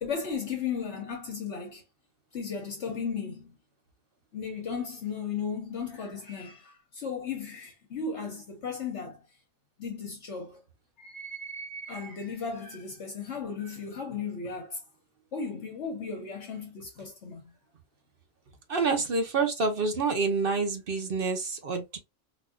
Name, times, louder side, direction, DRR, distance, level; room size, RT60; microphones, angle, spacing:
voice 1, 0.0-1.8 2.3-3.6 4.3-9.2 9.8-10.6 11.0-14.8 15.3-17.4, left 5 dB, 60° left, 1.2 m, -35 dB
voice 2, 18.7-22.0, right 4 dB, 50° right, 1.0 m, -27 dB
4.1 x 2.6 x 2.3 m
omnidirectional pair, 1.3 m